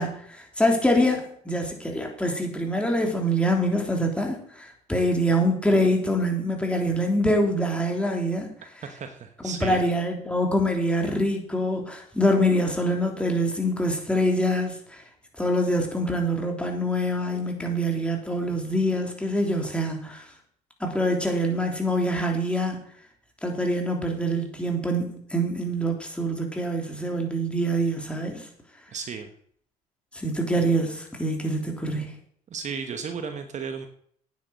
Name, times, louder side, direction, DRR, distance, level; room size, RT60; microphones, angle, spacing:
voice 1, 0.0-8.5 9.4-15.0 15.4-20.2 20.8-22.8 23.4-28.5 30.1-32.1, equal, 5° left, 1 dB, 3.2 m, -25 dB
voice 2, 8.8-9.8 28.9-29.3 32.5-33.9, right 6 dB, 45° right, 7 dB, 1.3 m, -34 dB
9.3 x 8.3 x 6.3 m, 0.62 s
supercardioid pair, 90°, 17 cm